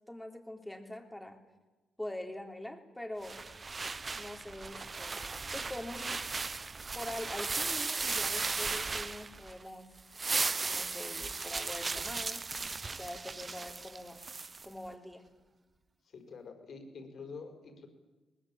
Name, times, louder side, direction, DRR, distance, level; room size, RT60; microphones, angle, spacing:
voice 1, 0.1-1.4 2.0-3.4 4.2-6.2 6.9-9.9 10.6-12.4 13.0-14.2 14.6-15.2, left 1 dB, 5° left, 4 dB, 3.4 m, -43 dB
sound 1, 3.2-9.6 10.0-14.7, right 4 dB, 30° right, 0.8 m, -36 dB
voice 2, 16.0-17.9, left 4 dB, 55° left, 5 dB, 5.2 m, -47 dB
21.5 x 20.0 x 8.8 m, 1.2 s
cardioid pair, 90°, 0 cm